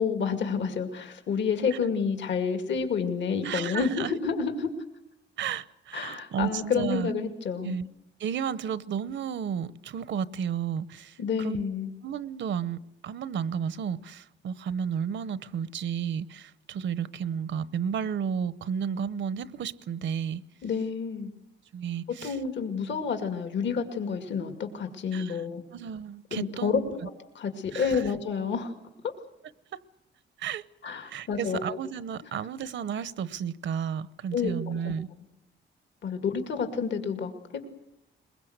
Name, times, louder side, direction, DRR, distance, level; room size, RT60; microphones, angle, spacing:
voice 1, 0.0-4.7 5.9-7.8 11.2-11.9 20.6-21.3 22.2-25.6 26.3-27.1 27.4-28.7 29.0-29.1 30.8-31.8 34.3-34.6 34.8-34.9 36.0-37.7, left 6 dB, 65° left, 2.3 m, -29 dB
voice 2, 3.4-4.1 5.4-7.1 7.6-7.9 8.2-11.6 12.0-20.4 21.7-22.4 25.1-25.4 25.7-26.9 27.7-28.0 29.7-29.8 30.4-30.6 31.0-35.1, right 7 dB, 70° right, 0.9 m, -32 dB
22.0 x 21.5 x 8.0 m
wide cardioid pair, 145°, 20 cm